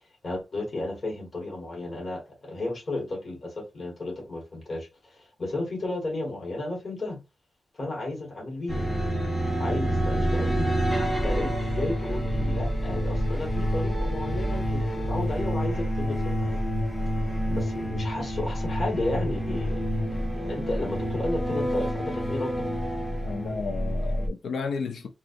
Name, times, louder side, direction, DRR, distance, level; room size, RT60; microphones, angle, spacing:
voice 1, 0.2-7.2 7.7-8.9 9.6-10.8 11.2-16.6 17.5-22.5, left 2 dB, 45° left, 1.4 m, -33 dB
sound 1, 8.7-24.3, equal, 15° left, 0.9 m, -28 dB
voice 2, 23.2-25.1, left 5 dB, 85° left, 0.5 m, -32 dB
4.0 x 2.5 x 2.5 m
wide cardioid pair, 135°, 0 cm